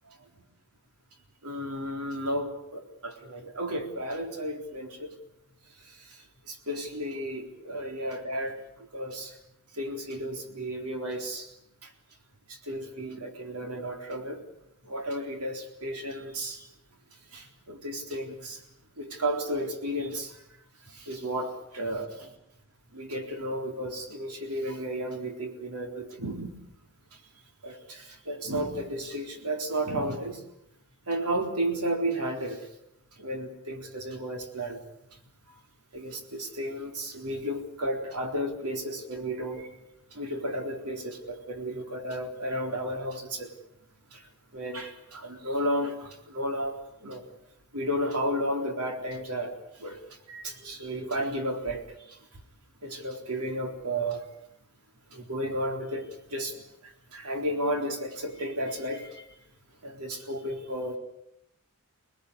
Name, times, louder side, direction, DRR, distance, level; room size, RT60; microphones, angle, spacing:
voice 1, 1.4-5.1 6.5-8.6 8.9-9.3 9.8-11.5 12.7-14.4 14.9-16.6 17.3-18.6 19.0-20.3 21.1-22.3 22.9-26.5 27.6-30.4 31.1-32.6 33.2-34.8 35.9-39.7 40.1-43.5 44.5-47.2 47.7-49.5 49.8-50.0 50.3-51.8 52.8-54.2 55.1-56.5 57.1-59.2 59.8-61.0, right 1 dB, 85° right, 4 dB, 3.9 m, -33 dB
25.5 x 20.0 x 8.3 m, 0.76 s
head